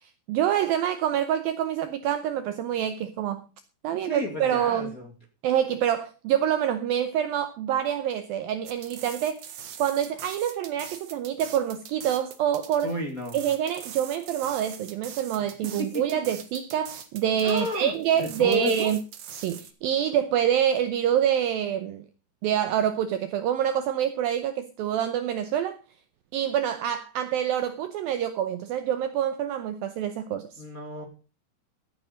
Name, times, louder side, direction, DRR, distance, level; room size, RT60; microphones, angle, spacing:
voice 1, 0.3-3.4 3.8-4.9 5.4-9.4 9.8-12.9 13.3-19.0 19.4-22.1 22.4-25.8 26.3-30.5, right 10 dB, 85° right, 2.1 m, -26 dB
voice 2, 3.9-5.1 12.8-13.4 15.8-16.0 17.4-19.0 30.6-31.0, left 2 dB, 30° left, 1.6 m, -32 dB
sound 1, 8.7-19.7, right 8 dB, 55° right, 2.0 m, -43 dB
14.5 x 9.5 x 5.2 m
omnidirectional pair, 5.2 m